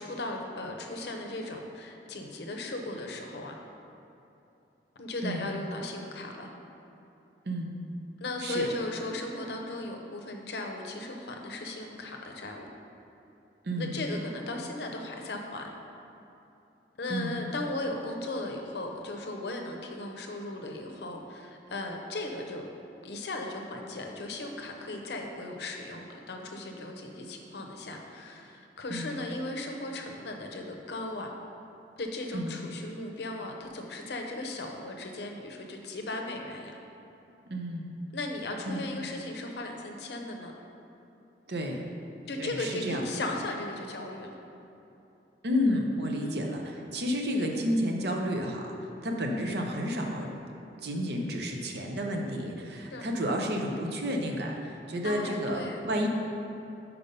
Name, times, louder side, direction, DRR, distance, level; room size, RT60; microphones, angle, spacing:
voice 1, 0.0-3.5 5.0-6.5 8.2-12.7 13.8-15.7 17.0-22.7 23.0-31.3 32.0-36.8 38.1-40.5 42.3-44.4 46.2-46.5 52.9-53.1 55.0-55.8, left 2 dB, 70° left, 2 dB, 0.6 m, -37 dB
voice 2, 13.6-14.0 17.1-17.4 28.9-29.1 32.3-32.6 37.5-37.9 38.7-38.8 41.5-41.9 42.4-43.1 45.4-48.7 49.0-50.3 50.8-56.1, equal, 65° right, 1 dB, 0.7 m, -31 dB
5.3 x 4.4 x 5.3 m, 2.9 s
head